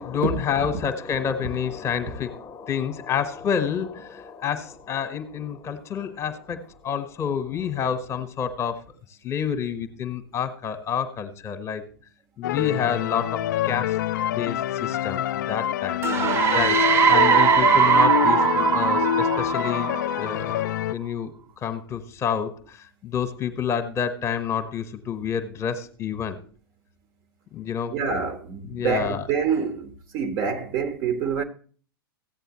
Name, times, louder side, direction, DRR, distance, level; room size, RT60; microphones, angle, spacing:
voice 1, 0.0-8.8 9.2-11.8 12.4-14.0 14.3-16.0 16.5-16.8 17.1-19.9 20.2-26.4 27.5-28.0 28.6-29.3, left 7 dB, 25° left, 1.3 m, -29 dB
sound 1, 12.4-20.9, left 12 dB, 55° left, 0.4 m, -26 dB
sound 2, 16.0-20.6, right 7 dB, 20° right, 0.5 m, -20 dB
voice 2, 16.0-16.5 27.9-31.4, right 6 dB, 35° right, 1.4 m, -27 dB
15.0 x 8.9 x 3.1 m
figure-of-eight pair, 100°, 12 cm